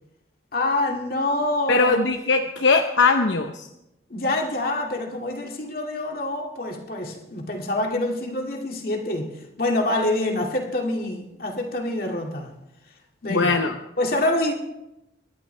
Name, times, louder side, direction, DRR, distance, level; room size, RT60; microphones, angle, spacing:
voice 1, 0.5-2.0 4.1-12.5 13.2-13.6 14.0-14.5, left 1 dB, 50° left, 1 dB, 2.1 m, -26 dB
voice 2, 1.7-3.6 13.3-13.7, left 4 dB, 75° left, 5 dB, 0.8 m, -20 dB
24.5 x 11.5 x 3.3 m, 0.88 s
head